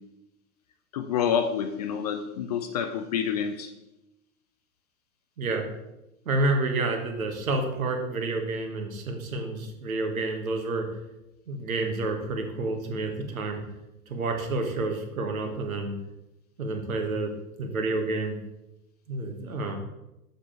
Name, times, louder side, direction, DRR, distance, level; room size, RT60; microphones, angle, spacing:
voice 1, 0.9-3.7, left 8 dB, 30° left, 7 dB, 0.4 m, -28 dB
voice 2, 6.2-10.9 11.5-13.6 14.1-15.9 16.6-17.3 17.6-18.4 19.1-19.8, right 2 dB, 65° right, 4 dB, 1.5 m, -29 dB
6.8 x 5.6 x 4.4 m, 0.92 s
figure-of-eight pair, 95°, 44 cm